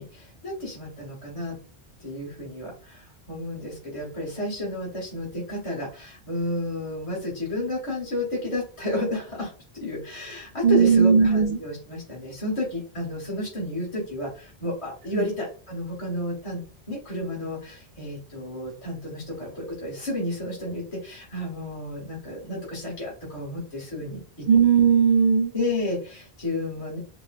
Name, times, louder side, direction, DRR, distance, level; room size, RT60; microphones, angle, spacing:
voice 1, 0.0-1.6 2.0-24.5 25.5-27.0, left 1 dB, 30° left, -4 dB, 1.6 m, -32 dB
voice 2, 10.6-11.6 15.1-15.3 24.5-25.5, right 6 dB, 55° right, 0 dB, 0.6 m, -18 dB
4.6 x 2.3 x 2.4 m, 0.38 s
omnidirectional pair, 1.1 m